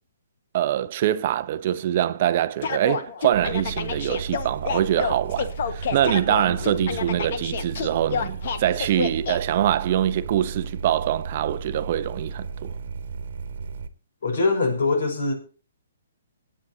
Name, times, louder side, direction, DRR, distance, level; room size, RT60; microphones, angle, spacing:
voice 1, 0.5-12.7, right 11 dB, 40° right, 0.8 m, -24 dB
sound 1, 2.6-9.4, left 6 dB, 55° left, 1.5 m, -29 dB
sound 2, 3.3-13.9, right 5 dB, 65° right, 1.4 m, -34 dB
voice 2, 6.5-7.0 14.2-15.3, left 3 dB, 70° left, 5.6 m, -24 dB
25.0 x 8.9 x 2.8 m
hypercardioid pair, 155°, 0 cm